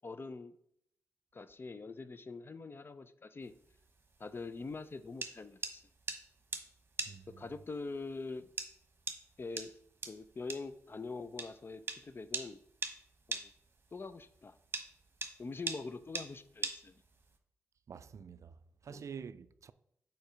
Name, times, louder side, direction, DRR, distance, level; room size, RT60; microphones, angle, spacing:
voice 1, 0.0-0.6 1.3-3.5 4.2-5.8 7.4-8.5 9.4-9.7 10.1-12.6 13.3-13.5 13.9-14.6 15.4-16.9 18.9-19.0, left 3 dB, 40° left, 0.5 m, -44 dB
sound 1, 3.4-17.4, right 3 dB, 35° right, 1.1 m, -43 dB
voice 2, 7.1-7.5 17.9-19.7, right 6 dB, 60° right, 0.3 m, -48 dB
5.3 x 4.5 x 5.0 m
cardioid pair, 50°, 6 cm